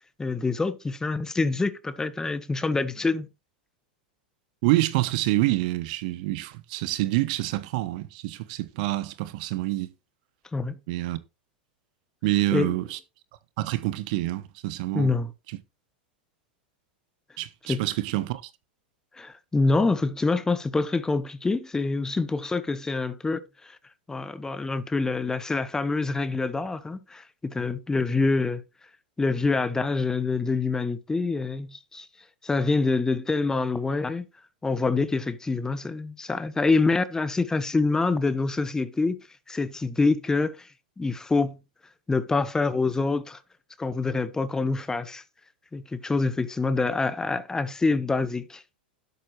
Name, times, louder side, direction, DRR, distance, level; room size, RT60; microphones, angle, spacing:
voice 1, 0.2-3.3 10.5-10.8 12.5-12.7 14.9-15.3 17.7-17.8 19.2-23.8 24.1-28.6 29.2-32.1 32.4-34.3 34.6-39.2 39.5-40.7 41.0-41.6 42.1-43.4 43.8-45.2 45.7-48.8, left 3 dB, 10° left, 1.1 m, -26 dB
voice 2, 4.6-9.9 10.9-11.2 12.2-13.0 13.6-15.2 17.4-18.4, right 17 dB, 60° right, 1.0 m, -27 dB
12.5 x 8.2 x 3.2 m
hypercardioid pair, 100°, 5 cm